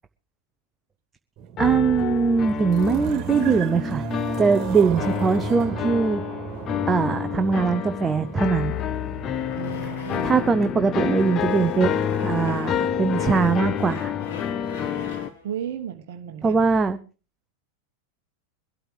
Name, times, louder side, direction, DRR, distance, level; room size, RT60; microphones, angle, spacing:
sound 1, 1.4-9.9, right 7 dB, 35° right, 2.7 m, -35 dB
sound 2, 1.6-15.3, left 9 dB, 30° left, 0.8 m, -29 dB
voice 1, 1.6-4.0 4.4-6.2 6.9-8.8 10.2-14.1 16.4-17.0, right 5 dB, 15° right, 9 dB, 0.7 m, -21 dB
sound 3, 6.5-10.7 11.1-15.4, left 5 dB, 55° left, 3.5 m, -40 dB
voice 2, 9.6-10.3 15.1-16.6, right 8 dB, 50° right, 6 dB, 1.2 m, -34 dB
23.0 x 12.5 x 3.2 m, 0.34 s
figure-of-eight pair, 90°, 0 cm